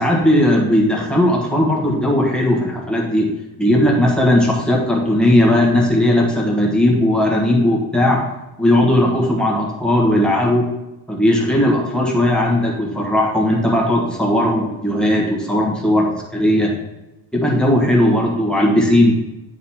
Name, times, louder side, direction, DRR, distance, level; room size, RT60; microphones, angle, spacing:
voice 1, 0.0-8.2 8.6-10.7 11.1-16.7 17.3-19.1, left 1 dB, ahead, -3 dB, 1.5 m, -17 dB
9.5 x 4.1 x 4.3 m, 0.96 s
cardioid pair, 155°, 38 cm